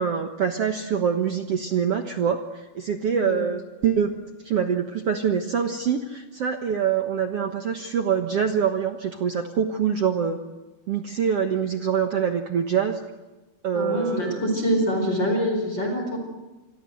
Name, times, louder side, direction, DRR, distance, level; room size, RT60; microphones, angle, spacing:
voice 1, 0.0-4.1 4.4-10.4 10.9-13.0 13.6-14.6, right 7 dB, 65° right, 6 dB, 1.5 m, -25 dB
voice 2, 13.7-16.2, equal, 30° left, 3 dB, 5.1 m, -25 dB
28.0 x 22.0 x 7.8 m, 1.2 s
omnidirectional pair, 4.5 m